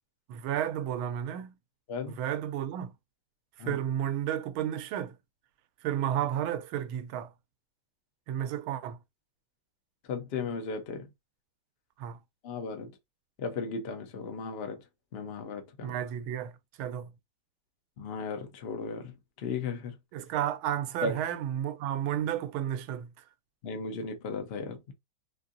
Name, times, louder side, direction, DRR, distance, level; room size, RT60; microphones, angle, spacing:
voice 1, 0.3-1.5 2.1-2.9 3.6-5.2 5.8-7.3 8.3-9.0 12.0-12.2 15.8-17.1 20.1-23.1, right 10 dB, 85° right, 1.4 m, -32 dB
voice 2, 1.9-2.2 3.6-3.8 10.1-11.1 12.4-12.9 13.4-14.8 15.1-16.0 18.0-20.0 21.0-21.2 23.6-24.9, left 4 dB, 65° left, 0.6 m, -36 dB
4.3 x 2.7 x 2.5 m
omnidirectional pair, 2.2 m